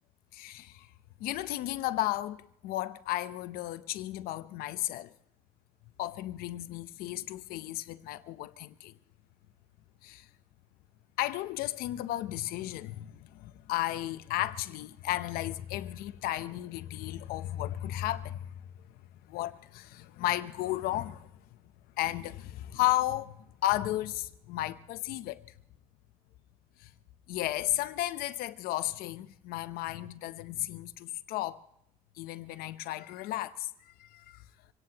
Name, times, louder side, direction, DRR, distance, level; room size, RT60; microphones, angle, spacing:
voice 1, 0.3-0.9 1.2-5.1 6.0-9.0 10.0-10.3 11.2-18.6 19.3-21.3 22.0-25.5 26.8-26.9 27.3-31.6 32.2-34.4, left 15 dB, 80° left, 0.7 m, -34 dB
25.5 x 17.5 x 2.9 m
cardioid pair, 105°, 15 cm